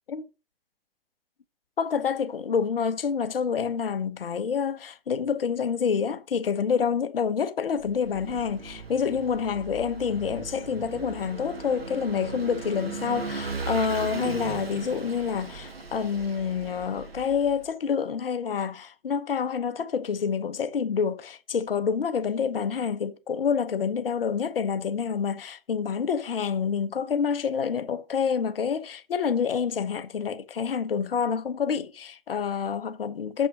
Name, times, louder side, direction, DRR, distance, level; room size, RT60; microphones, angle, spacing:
voice 1, 1.8-33.5, left 6 dB, 70° left, 1.2 m, -27 dB
Vehicle / Engine, 7.8-17.6, right 4 dB, 85° right, 2.0 m, -37 dB
7.8 x 5.5 x 6.4 m
figure-of-eight pair, 120°, 30 cm